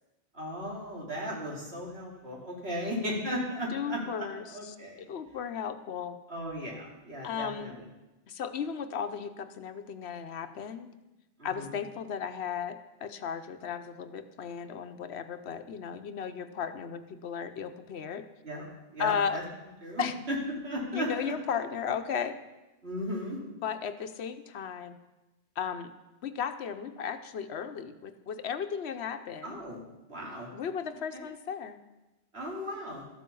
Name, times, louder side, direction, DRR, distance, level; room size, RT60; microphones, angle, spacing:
voice 1, 0.3-4.3 4.5-5.0 6.3-7.7 11.4-11.7 18.4-18.6 18.9-19.4 19.8-20.4 20.6-21.3 22.8-23.4 29.4-29.8 30.1-30.5 31.1-31.3 32.3-33.0, equal, 75° right, -3 dB, 3.2 m, -36 dB
voice 2, 3.7-6.2 7.2-7.8 8.3-10.9 11.4-18.2 19.0-19.4 20.0-20.1 20.9-22.4 23.4-25.0 25.6-25.9 26.2-29.6 30.5-31.8, left 7 dB, 85° left, 9 dB, 1.1 m, -35 dB
13.0 x 8.4 x 6.9 m, 1.0 s
omnidirectional pair, 1.1 m